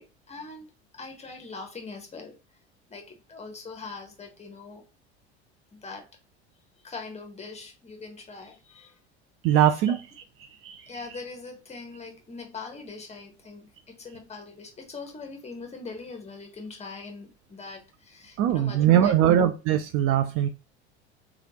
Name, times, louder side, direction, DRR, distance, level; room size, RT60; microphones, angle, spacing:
voice 1, 0.0-2.4 2.9-4.8 5.7-6.1 6.8-9.0 9.9-10.0 10.9-19.4, left 4 dB, 20° left, 1.0 m, -42 dB
voice 2, 9.4-10.0 10.6-10.8 18.4-20.5, right 10 dB, 45° right, 0.4 m, -21 dB
3.2 x 2.4 x 2.9 m
hypercardioid pair, 75°, 33 cm